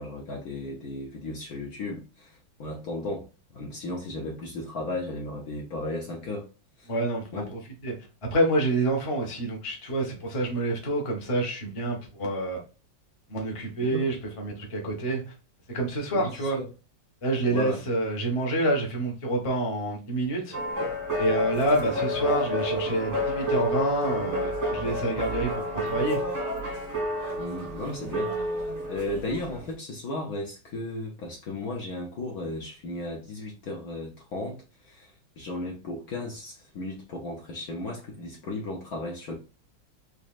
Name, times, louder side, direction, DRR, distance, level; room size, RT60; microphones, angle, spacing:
voice 1, 0.0-6.5 6.8-6.9 7.3-7.6 13.8-14.1 16.1-16.6 17.5-17.8 27.4-28.3 28.9-39.3, left 2 dB, 60° left, 0 dB, 1.0 m, -35 dB
voice 2, 6.9-7.9 8.3-12.6 13.3-15.2 15.7-16.6 17.2-20.6 21.2-26.2, right 1 dB, 25° left, 0 dB, 0.7 m, -27 dB
sound 1, 20.5-29.7, equal, 30° right, 0.8 m, -30 dB
4.2 x 3.2 x 2.4 m, 0.34 s
omnidirectional pair, 2.2 m